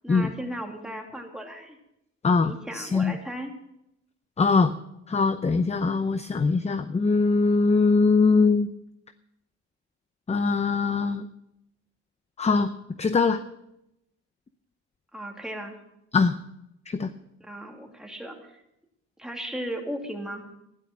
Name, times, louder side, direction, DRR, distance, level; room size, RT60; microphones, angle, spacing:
voice 1, 0.0-1.8 2.4-3.5 15.1-15.8 17.5-18.6 19.2-20.4, equal, ahead, 1 dB, 2.8 m, -36 dB
voice 2, 2.2-3.2 4.4-4.7 5.1-8.7 10.3-11.3 12.4-12.7 13.0-13.4 16.1-16.3 16.9-17.1, left 4 dB, 20° left, 10 dB, 0.7 m, -22 dB
12.5 x 11.0 x 6.1 m, 0.83 s
cardioid pair, 90°, 30 cm